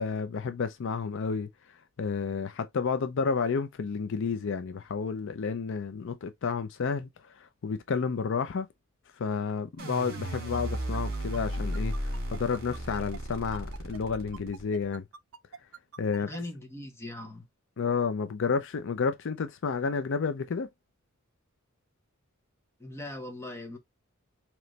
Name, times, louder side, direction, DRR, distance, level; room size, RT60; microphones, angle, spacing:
voice 1, 0.0-1.5 2.0-7.1 7.4-8.7 9.2-15.0 16.0-16.3 17.8-20.7, left 5 dB, 60° left, 0.5 m, -31 dB
sound 1, 9.8-14.8, equal, 50° right, 2.3 m, -34 dB
sound 2, 10.1-16.4, right 7 dB, 70° right, 0.5 m, -46 dB
voice 2, 16.2-17.4 22.8-23.8, left 1 dB, 10° left, 0.9 m, -40 dB
3.9 x 3.1 x 3.1 m
head